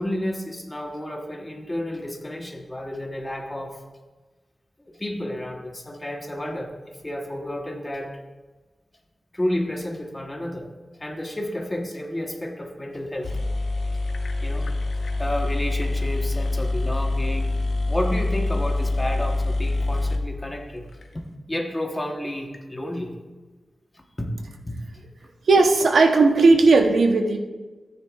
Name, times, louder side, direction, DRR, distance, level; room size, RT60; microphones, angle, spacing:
voice 1, 0.0-3.8 5.0-6.8 7.0-8.1 9.3-10.7 11.0-13.3 14.4-14.7 15.2-17.5 17.9-20.9 21.1-21.2 21.5-23.1 24.2-24.4 24.7-24.8, left 1 dB, 15° left, 2 dB, 1.1 m, -31 dB
sound 1, 13.0-13.1 13.2-21.1, left 2 dB, 70° left, 0.8 m, -25 dB
voice 2, 25.5-27.4, right 3 dB, 80° right, 4 dB, 0.9 m, -16 dB
14.0 x 9.5 x 2.4 m, 1.3 s
wide cardioid pair, 150°, 0 cm